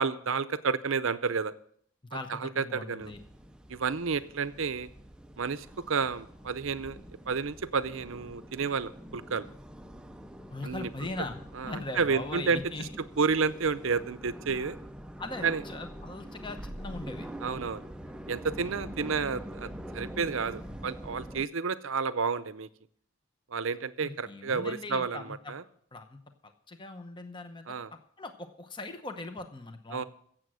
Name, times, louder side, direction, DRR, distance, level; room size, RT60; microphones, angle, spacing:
voice 1, 0.0-1.5 2.3-3.1 3.7-4.9 5.4-7.0 7.3-9.5 10.6-10.9 11.5-12.9 13.2-14.8 15.4-15.6 17.4-17.8 18.3-22.7 23.5-25.6 27.7-27.9 29.9-30.0, right 5 dB, 65° right, 14 dB, 0.6 m, -30 dB
voice 2, 2.0-3.2 10.5-12.8 15.2-17.3 24.0-25.5 25.9-27.7 28.2-30.0, left 2 dB, 20° left, 7 dB, 0.8 m, -40 dB
sound 1, 3.0-21.4, equal, 5° right, 0.4 m, -45 dB
16.0 x 7.7 x 6.2 m, 0.64 s
head